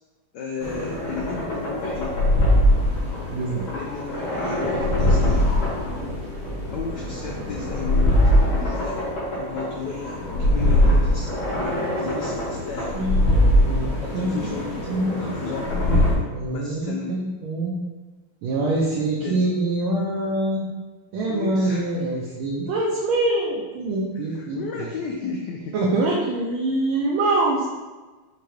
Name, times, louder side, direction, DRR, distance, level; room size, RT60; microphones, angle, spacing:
voice 1, 0.3-2.2 3.7-5.5 6.7-8.2 8.5-9.0 9.3-13.0 14.0-16.2 16.5-17.2 18.9-19.4 21.2-22.1 24.1-25.8, left 4 dB, 85° left, 0 dB, 0.9 m, -34 dB
sound 1, 0.6-16.1, left 1 dB, 50° left, 2.2 m, -22 dB
voice 2, 3.3-3.7 8.4-8.5 13.0-13.2 13.6-15.2 15.7-17.8 18.4-20.7 21.1-24.9 25.7-27.7, right 2 dB, 75° right, -3 dB, 1.4 m, -25 dB
5.8 x 2.9 x 3.1 m, 1.3 s
omnidirectional pair, 2.4 m